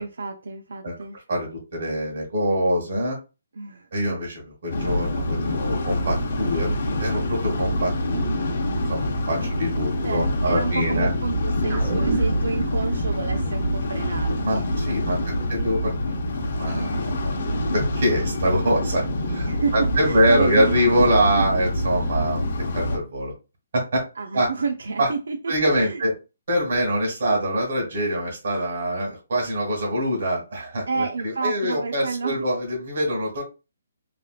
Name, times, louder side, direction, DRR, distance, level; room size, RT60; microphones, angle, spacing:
voice 1, 0.0-1.2 3.6-3.9 8.1-8.8 9.4-9.6 10.0-15.5 16.8-17.2 19.5-21.1 21.4-21.5 24.2-26.0 30.9-32.5, right 4 dB, 80° right, 0.4 m, -30 dB
voice 2, 1.3-3.2 3.9-8.4 8.9-11.1 14.4-16.1 16.5-17.5 17.7-19.0 19.3-22.4 22.7-23.3 23.7-24.0 24.3-24.5 25.0-25.1 25.5-26.1 26.5-33.4, equal, 60° right, 1.6 m, -24 dB
sound 1, 4.7-23.0, left 1 dB, 60° left, 0.8 m, -26 dB
sound 2, 11.7-16.3 16.6-16.7, right 4 dB, 35° right, 0.8 m, -33 dB
3.2 x 2.6 x 2.3 m
hypercardioid pair, 155°, 0 cm